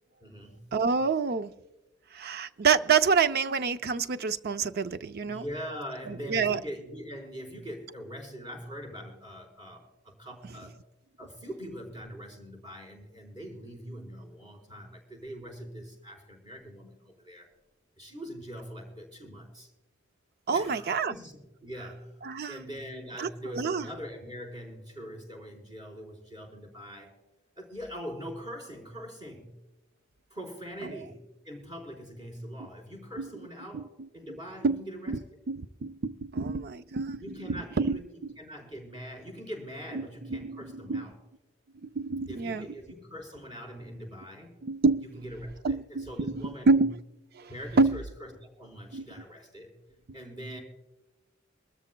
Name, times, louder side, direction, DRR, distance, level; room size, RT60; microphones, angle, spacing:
voice 1, 0.2-0.7 5.3-10.7 11.2-17.5 18.0-19.7 20.5-22.2 22.5-27.1 27.5-29.5 30.3-35.1 37.2-38.1 38.4-41.2 42.3-44.7 45.0-46.9 47.4-49.7 50.1-50.6, equal, 20° right, 0 dB, 4.2 m, -42 dB
voice 2, 0.7-1.5 2.1-5.4 6.1-6.6 20.5-21.2 22.2-22.6 23.2-23.8 30.8-30.9 33.2-33.3 33.7-33.8 34.6-34.8 35.1-35.2 35.5-37.2 37.5-38.0 39.9-40.6 40.9-41.0 41.8-42.7 44.6-45.0 45.6-46.9 47.4-47.5 47.8-48.0 48.9-49.1, right 4 dB, 50° right, 12 dB, 0.5 m, -27 dB
24.0 x 13.5 x 2.2 m, 1.0 s
head